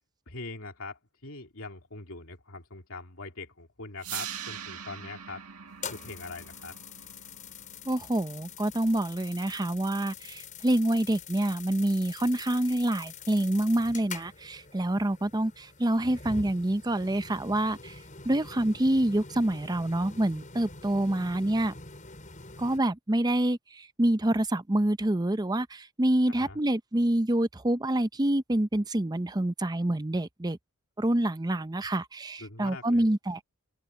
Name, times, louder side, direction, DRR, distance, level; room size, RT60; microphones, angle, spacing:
voice 1, 0.3-5.4 5.9-6.8 26.4-26.6 32.4-33.0, left 3 dB, 65° left, 3.0 m, -42 dB
sound 1, 4.0-10.0, right 9 dB, 80° right, 1.9 m, -43 dB
sound 2, 5.7-22.8, left 5 dB, 35° left, 6.6 m, -45 dB
voice 2, 7.9-21.7 22.6-30.6 31.0-33.4, right 1 dB, 20° right, 0.6 m, -27 dB
open air
head